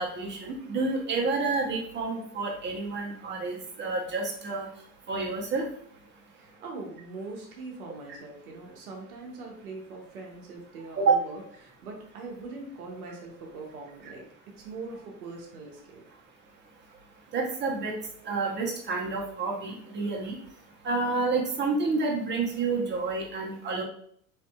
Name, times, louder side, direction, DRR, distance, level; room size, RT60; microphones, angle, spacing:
voice 1, 0.0-4.7 5.1-5.6 11.0-11.1 17.3-17.9 18.2-20.4 20.8-23.8, right 3 dB, 25° right, -1 dB, 0.8 m, -29 dB
voice 2, 6.3-14.2 14.6-16.0, right 3 dB, 85° right, 0 dB, 0.7 m, -42 dB
2.7 x 2.6 x 2.2 m, 0.65 s
hypercardioid pair, 75°, 43 cm